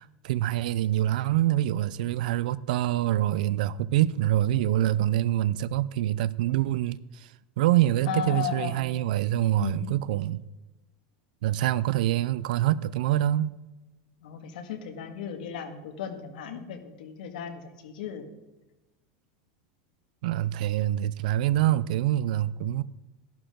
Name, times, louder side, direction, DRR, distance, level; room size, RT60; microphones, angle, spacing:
voice 1, 0.0-10.5 11.4-13.6 20.2-22.8, right 13 dB, 75° right, 0.5 m, -25 dB
voice 2, 8.1-8.9 9.6-10.0 14.2-18.3, left 7 dB, 85° left, 1.9 m, -35 dB
13.0 x 11.5 x 3.8 m
supercardioid pair, 165°, 5 cm